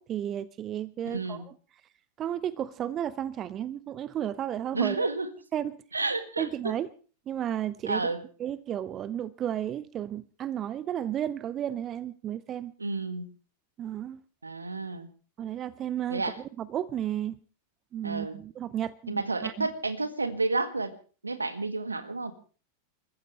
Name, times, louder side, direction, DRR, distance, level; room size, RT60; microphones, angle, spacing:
voice 1, 0.0-1.4 2.2-5.1 5.5-5.7 6.4-6.9 7.3-8.0 8.4-12.7 13.8-14.2 15.4-16.2 16.6-17.4 17.9-19.7, right 10 dB, 30° right, 19 dB, 0.7 m, -33 dB
voice 2, 1.0-1.4 4.7-5.3 5.9-6.7 7.9-8.2 12.8-13.3 14.4-15.1 16.1-16.4 18.0-18.4 19.1-20.9 21.2-22.3, right 3 dB, 80° right, 12 dB, 1.7 m, -30 dB
29.0 x 14.5 x 3.3 m, 0.37 s
figure-of-eight pair, 90°, 0 cm